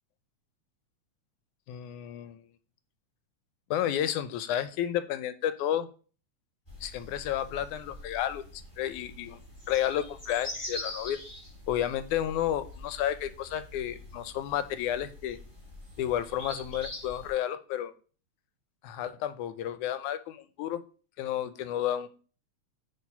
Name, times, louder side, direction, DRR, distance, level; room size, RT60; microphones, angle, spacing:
voice 1, 1.7-2.5 3.7-5.9 6.8-9.4 9.7-11.2 11.7-15.4 16.0-17.9 18.8-20.8 21.2-22.1, left 11 dB, 85° left, 12 dB, 2.2 m, -31 dB
Ambient Garden Sheffield, 6.7-17.3, left 1 dB, 15° left, 4.0 m, -44 dB
9.6 x 4.6 x 5.7 m, 0.38 s
omnidirectional pair, 3.5 m